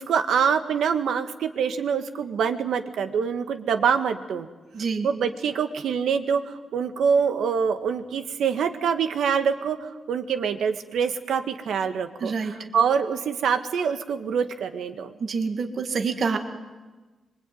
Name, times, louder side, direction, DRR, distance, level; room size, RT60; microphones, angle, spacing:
voice 1, 0.0-4.5 5.0-15.1, right 6 dB, 90° right, 8 dB, 1.9 m, -25 dB
voice 2, 4.7-5.1 12.2-12.5 15.2-16.4, right 5 dB, 50° right, 5 dB, 2.3 m, -26 dB
25.0 x 24.5 x 9.4 m, 1.2 s
wide cardioid pair, 145°, 0 cm